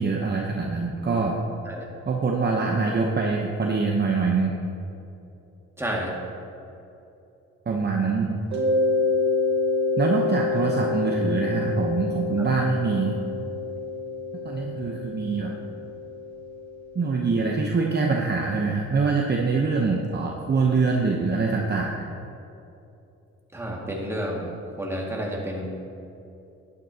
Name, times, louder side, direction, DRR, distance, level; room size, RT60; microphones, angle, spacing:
voice 1, 0.0-1.4 2.1-4.5 7.7-8.3 10.0-13.2 14.4-15.5 16.9-22.1, right 4 dB, 35° right, 0 dB, 0.9 m, -24 dB
voice 2, 5.8-6.1 23.5-24.5 24.8-25.7, equal, 10° right, -2 dB, 2.0 m, -30 dB
Mallet percussion, 8.5-17.1, left 3 dB, 70° right, 2.2 m, -27 dB
11.5 x 9.4 x 2.8 m, 2.8 s
cardioid pair, 80°, 29 cm